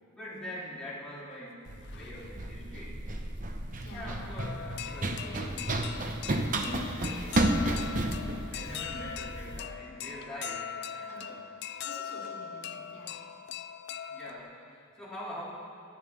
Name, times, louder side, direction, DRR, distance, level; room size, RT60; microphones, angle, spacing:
voice 1, 0.1-1.6 1.9-3.1 3.9-6.3 6.6-8.0 8.5-11.4 14.1-15.5, equal, 5° left, -10 dB, 3.3 m, -44 dB
sound 1, 1.3-1.4 1.7-2.5 3.8-3.9 4.4-14.4, left 8 dB, 50° left, 0.4 m, -41 dB
Run, 1.7-9.6, right 1 dB, 40° right, 0.8 m, -32 dB
voice 2, 3.8-4.3 6.6-7.0 8.6-9.2 11.1-11.5 11.8-13.2, left 1 dB, 80° left, -6 dB, 3.6 m, -47 dB
23.5 x 9.3 x 3.5 m, 2.6 s
head